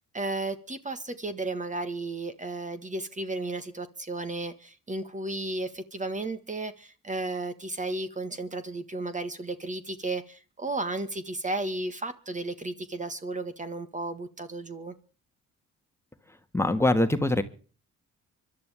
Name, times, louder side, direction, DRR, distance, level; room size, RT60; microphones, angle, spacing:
voice 1, 0.1-14.9, right 2 dB, 25° right, 10 dB, 1.5 m, -34 dB
voice 2, 16.5-17.4, left 1 dB, 10° left, 7 dB, 1.5 m, -23 dB
25.0 x 11.5 x 3.5 m, 0.38 s
cardioid pair, 90°, 30 cm